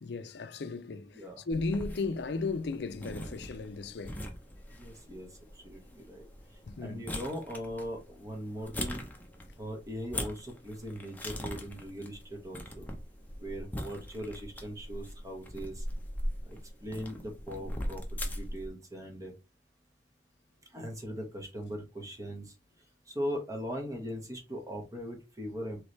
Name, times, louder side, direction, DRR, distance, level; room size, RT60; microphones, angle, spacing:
voice 1, 0.0-4.2 6.7-7.0, left 3 dB, 65° left, 0.5 m, -35 dB
sound 1, 1.5-18.7, left 1 dB, 10° left, 0.8 m, -41 dB
voice 2, 4.7-6.3 6.8-9.1 9.6-12.9 13.4-15.9 16.4-19.3 20.7-22.5 23.1-25.8, equal, 20° right, 1.2 m, -40 dB
4.6 x 3.2 x 3.2 m
head